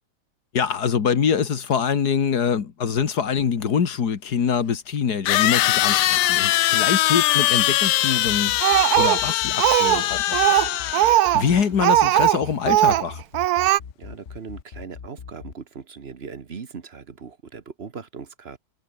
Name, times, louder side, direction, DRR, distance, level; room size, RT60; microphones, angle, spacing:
voice 1, 0.5-8.6 9.0-13.2, left 7 dB, 70° left, 2.2 m, -24 dB
sound 1, 3.6-3.7 5.3-11.4, left 15 dB, 85° left, 1.3 m, -21 dB
sound 2, 8.3-15.5, left 6 dB, 40° left, 1.3 m, -39 dB
Speech, 8.6-10.0 10.3-12.4 12.7-13.1 13.3-13.8, right 14 dB, 75° right, 1.1 m, -19 dB
voice 2, 14.0-18.6, right 5 dB, 40° right, 1.5 m, -39 dB
omnidirectional pair, 1.8 m